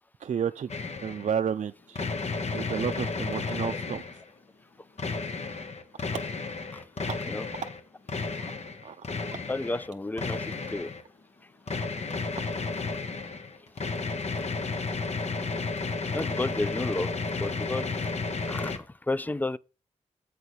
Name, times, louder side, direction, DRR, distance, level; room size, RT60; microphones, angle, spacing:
voice 1, 0.2-0.7 1.0-2.0 2.5-4.0 5.5-5.6 7.6-7.7 8.4-8.5 8.8-9.0 11.8-11.9, right 8 dB, 60° right, 0.4 m, -31 dB
sound 1, 0.7-1.3 2.0-4.3 5.0-7.8 8.1-9.9 10.2-11.0 11.7-18.8, left 4 dB, 55° left, 1.2 m, -32 dB
voice 2, 9.5-10.9 16.1-17.1 17.4-18.1 18.5-18.7 19.1-19.6, left 2 dB, 15° left, 0.4 m, -31 dB
8.0 x 4.1 x 6.3 m
cardioid pair, 45°, 14 cm